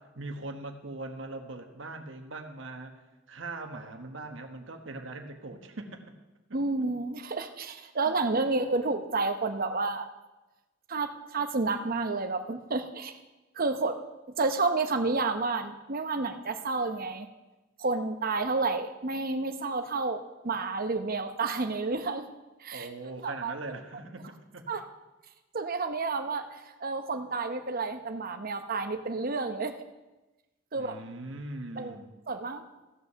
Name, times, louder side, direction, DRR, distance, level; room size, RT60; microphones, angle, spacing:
voice 1, 0.0-3.0 3.3-6.0 8.1-8.6 22.7-24.7 30.7-32.1, right 2 dB, 65° right, 5 dB, 1.2 m, -41 dB
voice 2, 6.5-10.1 10.9-13.1 13.6-14.0 14.4-17.3 17.8-22.3 22.6-22.9 23.2-23.5 24.7-24.8 25.5-29.8 30.7-31.0 31.8-32.0 32.3-32.6, right 3 dB, 45° right, 8 dB, 0.8 m, -30 dB
15.5 x 5.5 x 6.8 m, 1.1 s
head